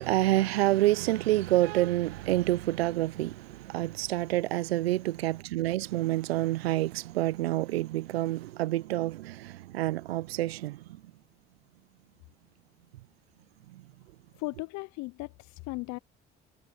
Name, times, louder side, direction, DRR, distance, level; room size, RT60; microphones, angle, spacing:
voice 1, 0.0-10.8, right 16 dB, 90° right, 0.6 m, -28 dB
voice 2, 14.4-16.0, left 23 dB, 70° left, 0.7 m, -37 dB
hypercardioid pair, 45°, 30 cm